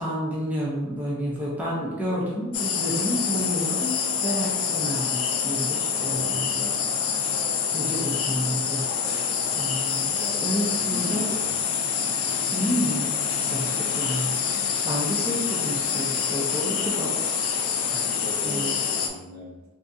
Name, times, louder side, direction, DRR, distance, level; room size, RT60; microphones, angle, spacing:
voice 1, 0.0-6.6 7.7-8.8 9.5-11.3 12.5-14.4 14.8-17.2 18.4-18.8, equal, 10° right, -6 dB, 0.6 m, -30 dB
sound 1, 2.5-19.1, left 7 dB, 70° left, 0.4 m, -26 dB
voice 2, 5.9-6.9 10.0-11.6 17.7-19.6, equal, 50° right, -4 dB, 0.8 m, -39 dB
3.4 x 2.6 x 2.6 m, 1.1 s
head